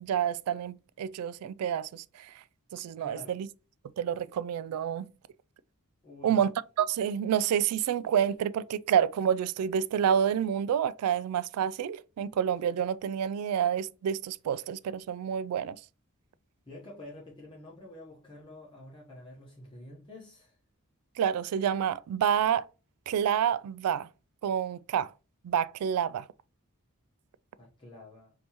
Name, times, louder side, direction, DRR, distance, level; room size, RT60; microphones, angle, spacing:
voice 1, 0.0-2.3 2.7-3.5 4.0-5.1 6.2-6.5 6.8-15.8 21.2-22.6 23.1-24.1 24.4-25.1 25.4-26.3, right 8 dB, 85° right, 0.3 m, -28 dB
voice 2, 3.0-3.4 6.0-6.5 16.6-20.6 27.6-28.3, left 2 dB, 25° left, 1.1 m, -48 dB
5.3 x 2.9 x 2.9 m
head